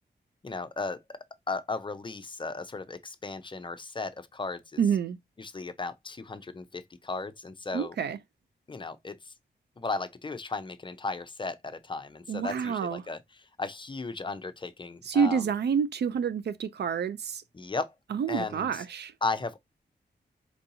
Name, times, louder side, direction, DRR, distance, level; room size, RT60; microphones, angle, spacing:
voice 1, 0.4-1.2 1.5-4.6 5.4-7.9 8.7-9.2 9.8-13.2 13.6-15.4 17.5-17.9 18.3-18.7 19.2-19.6, left 3 dB, 25° left, 0.5 m, -35 dB
voice 2, 4.8-5.2 7.7-8.2 12.3-13.1 15.0-17.4 18.1-19.1, right 7 dB, 70° right, 0.4 m, -28 dB
4.5 x 2.7 x 2.6 m
wide cardioid pair, 120°, 18 cm